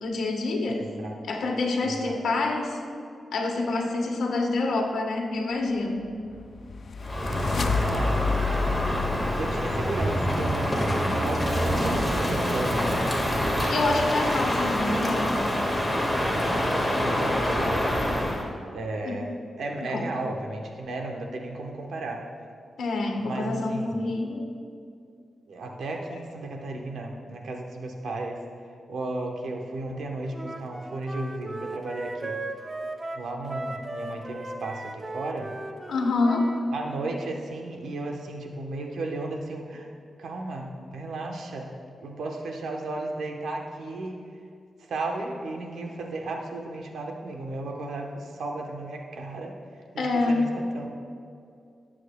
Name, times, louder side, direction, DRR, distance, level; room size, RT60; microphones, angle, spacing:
voice 1, 0.0-0.8 1.2-2.8 3.3-6.1 13.7-15.4 19.0-19.2 19.8-20.1 22.8-24.4 26.1-26.2 35.9-36.5 50.0-50.5, left 3 dB, 85° left, 0 dB, 1.2 m, -27 dB
voice 2, 0.7-1.1 1.8-2.2 7.8-8.3 9.3-11.5 11.8-13.0 16.9-17.9 18.7-22.3 23.2-24.0 25.5-28.4 28.9-32.4 33.1-35.5 36.7-39.9 40.2-41.7 42.0-44.2 44.9-49.6 49.9-50.9, right 2 dB, 85° right, 1 dB, 1.0 m, -34 dB
sound 1, 6.1-10.3, left 5 dB, 60° left, 0.4 m, -30 dB
Crow, 7.0-18.4, equal, 5° left, 1.7 m, -26 dB
Wind instrument woodwind instrument, 30.3-36.6, right 2 dB, 30° right, 0.7 m, -37 dB
18.0 x 7.5 x 2.3 m, 2.4 s
cardioid pair, 85°, 0 cm